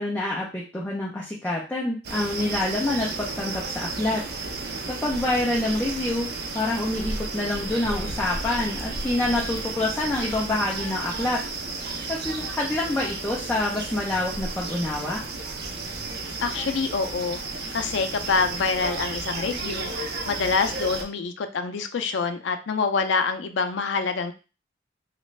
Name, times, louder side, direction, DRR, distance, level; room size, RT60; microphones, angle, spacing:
voice 1, 0.0-4.2 4.9-6.3 6.5-11.4 12.1-15.2, left 2 dB, 10° left, -5 dB, 0.6 m, -27 dB
sound 1, 2.0-21.0, right 3 dB, 60° right, 0.6 m, -33 dB
voice 2, 16.4-17.4 17.7-24.3, left 4 dB, 80° left, 8 dB, 0.5 m, -26 dB
3.1 x 2.5 x 3.2 m, 0.33 s
head